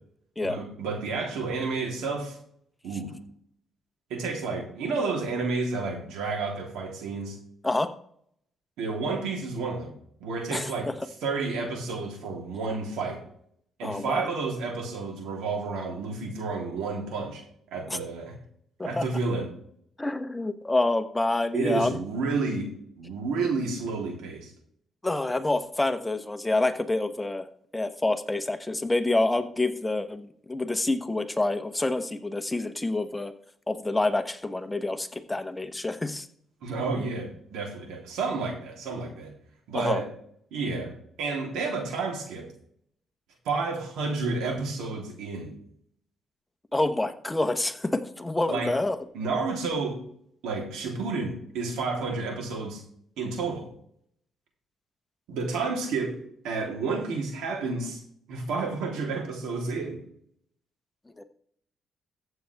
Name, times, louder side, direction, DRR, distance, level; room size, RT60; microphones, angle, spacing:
voice 1, 0.4-2.4 2.8-3.1 4.1-7.4 8.8-9.9 10.2-10.9 11.2-13.2 13.8-17.4 17.7-18.3 18.8-19.5 21.5-22.7 23.0-24.5 36.6-39.3 39.7-40.1 40.5-40.9 41.2-42.5 43.4-45.5 48.5-48.7 49.1-50.0 50.4-52.8 53.2-53.7 55.3-56.2 56.4-58.0 58.3-60.0, right 4 dB, 90° right, 1 dB, 3.3 m, -30 dB
voice 2, 10.5-10.9 13.8-14.3 17.9-18.0 18.8-19.0 20.0-22.0 25.0-27.5 27.7-33.3 33.7-36.3 39.7-40.0 46.7-49.0 61.2-61.3, left 2 dB, 15° left, 9 dB, 1.0 m, -27 dB
14.5 x 7.9 x 3.5 m, 0.64 s
cardioid pair, 90°, 0 cm